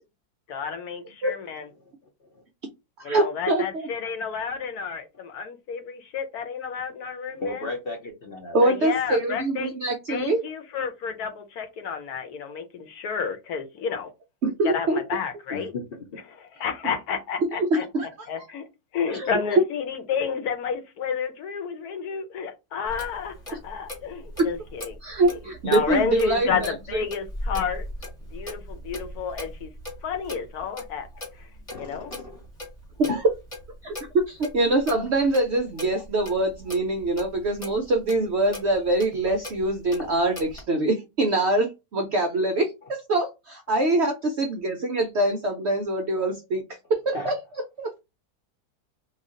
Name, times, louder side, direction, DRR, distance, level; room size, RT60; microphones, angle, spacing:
voice 1, 0.5-1.7 3.0-7.7 8.6-9.7 10.1-14.1 14.6-15.7 16.6-18.7 18.9-25.4 25.6-27.9 28.3-29.7 30.0-31.1 31.4-31.5 31.8-32.1, left 6 dB, 70° left, 1.2 m, -31 dB
voice 2, 3.0-3.9 8.5-10.4 14.4-15.0 17.5-18.1 19.1-19.3 24.4-24.5 25.0-27.0 33.1-33.2 33.8-33.9 34.3-46.6 46.9-47.3 47.8-47.9, right 2 dB, 65° right, 0.6 m, -24 dB
voice 3, 7.3-8.6 15.5-16.1 22.1-22.2 29.3-29.5 31.7-32.5 47.1-47.3, left 2 dB, 55° left, 0.6 m, -35 dB
Clock, 22.9-40.6, left 1 dB, 25° left, 1.0 m, -39 dB
3.1 x 2.4 x 3.7 m
omnidirectional pair, 1.7 m